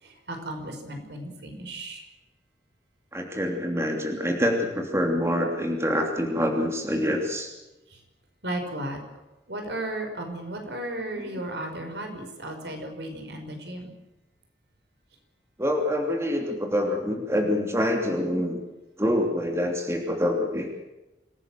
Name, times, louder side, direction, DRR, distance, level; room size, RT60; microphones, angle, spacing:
voice 1, 0.0-2.1 7.9-8.0 8.4-9.0 9.5-14.0, right 1 dB, 75° right, 4 dB, 5.4 m, -35 dB
voice 2, 3.1-7.5 15.6-18.6 19.0-20.7, equal, 15° right, 2 dB, 3.0 m, -26 dB
26.5 x 17.5 x 7.7 m, 1.0 s
head